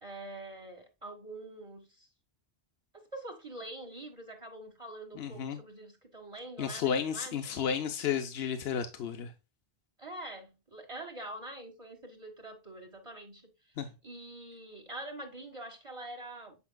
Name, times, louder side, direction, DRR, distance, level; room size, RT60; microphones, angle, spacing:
voice 1, 0.0-2.1 2.9-7.7 10.0-13.8 14.0-16.6, right 2 dB, 30° right, 1.5 m, -45 dB
voice 2, 5.2-5.6 6.6-9.3 13.8-13.9, left 7 dB, 80° left, 1.0 m, -32 dB
8.3 x 5.2 x 2.2 m
omnidirectional pair, 1.0 m